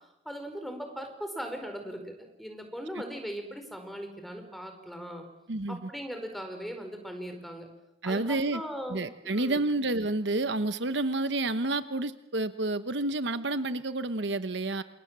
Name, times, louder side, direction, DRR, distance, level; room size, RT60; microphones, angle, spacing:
voice 1, 0.2-5.2 5.7-7.7 8.0-9.6, equal, ahead, 5 dB, 4.8 m, -39 dB
voice 2, 5.5-5.9 8.0-8.6 8.9-14.8, right 2 dB, 65° right, 11 dB, 1.1 m, -29 dB
28.5 x 28.0 x 7.6 m, 0.86 s
head